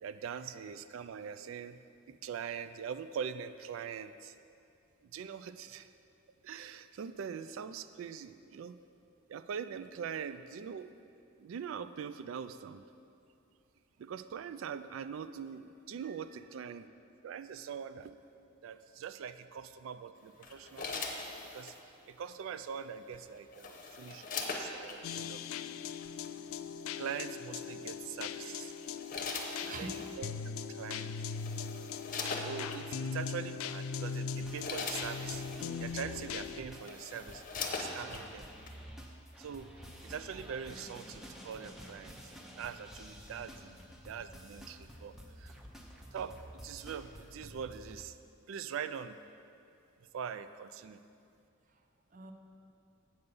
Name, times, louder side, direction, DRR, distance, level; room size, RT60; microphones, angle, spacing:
voice 1, 0.0-1.8 2.1-4.3 5.1-5.9 6.4-8.8 9.3-10.9 11.4-12.8 14.0-16.9 17.2-18.2 18.6-21.3 21.5-25.6 27.0-28.7 29.6-31.2 32.4-35.5 35.8-37.4 37.7-38.5 39.4-39.7 40.0-45.6 46.1-48.2 48.5-49.2 50.1-51.0, right 7 dB, 70° right, 12 dB, 0.3 m, -43 dB
sound 1, 20.4-21.8 23.1-25.0 26.0-26.3 27.9-28.2 28.8-30.1 30.9-31.0 31.3-32.8 33.6-33.7 34.2-35.7 36.3-36.4 36.7-38.3 38.7-38.8, left 4 dB, 40° left, 0.8 m, -41 dB
sound 2, 25.0-36.6, left 6 dB, 80° left, 0.3 m, -40 dB
voice 2, 29.6-30.2 51.7-51.8 52.1-52.3, right 3 dB, 40° right, 4 dB, 0.6 m, -45 dB
sound 3, 34.4-48.0, equal, ahead, 0.7 m, -51 dB
8.0 x 5.4 x 6.7 m, 2.5 s
head